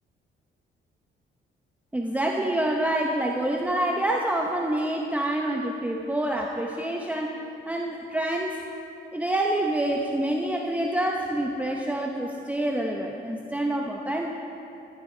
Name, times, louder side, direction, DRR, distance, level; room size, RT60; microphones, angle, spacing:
voice 1, 1.9-7.4 7.7-8.6 9.1-14.3, right 1 dB, 5° right, 0 dB, 0.9 m, -27 dB
13.5 x 13.5 x 3.9 m, 2.9 s
cardioid pair, 90°, 20 cm